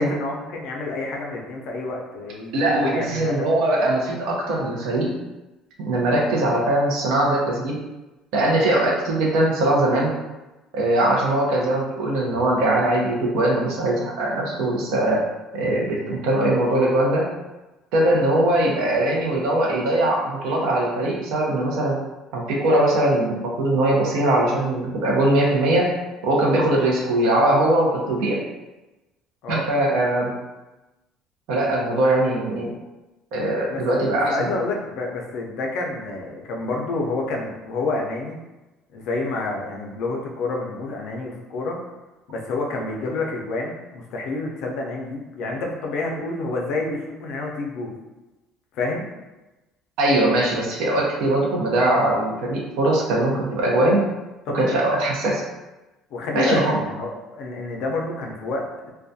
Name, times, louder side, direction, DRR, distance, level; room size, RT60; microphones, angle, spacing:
voice 1, 0.0-3.4 29.4-29.7 33.7-38.4 38.9-41.8 42.3-47.9 48.7-49.0 54.5-54.8 56.1-58.9, left 2 dB, 55° left, 0 dB, 0.4 m, -28 dB
voice 2, 2.5-5.1 5.8-7.8 8.3-10.1 10.7-15.2 15.5-17.3 17.9-22.0 22.3-25.9 26.2-28.4 29.5-30.3 31.5-32.7 33.3-34.5 50.0-54.1 54.5-55.4 56.3-56.8, right 1 dB, 65° right, -2 dB, 0.6 m, -21 dB
2.3 x 2.1 x 2.6 m, 1.1 s
cardioid pair, 180°, 0 cm